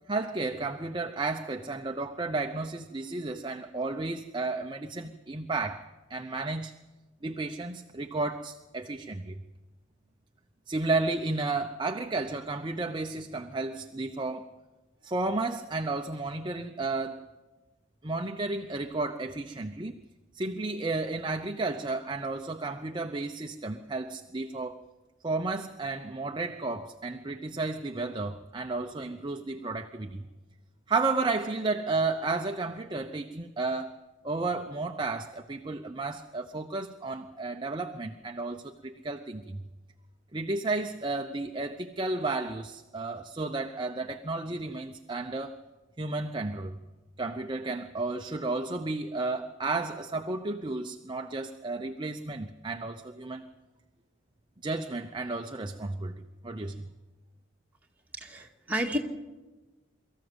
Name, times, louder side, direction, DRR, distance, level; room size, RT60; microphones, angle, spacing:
voice 1, 0.1-6.7 7.2-9.4 10.7-14.5 15.0-17.2 18.0-19.9 20.3-24.8 25.2-30.2 30.9-33.9 34.2-39.7 40.3-45.6 46.0-46.8 47.2-53.4 54.6-56.2 56.4-56.9, right 3 dB, 25° right, 5 dB, 0.7 m, -32 dB
voice 2, 58.2-59.0, equal, 10° right, -1 dB, 2.1 m, -31 dB
23.5 x 14.5 x 8.0 m, 1.2 s
head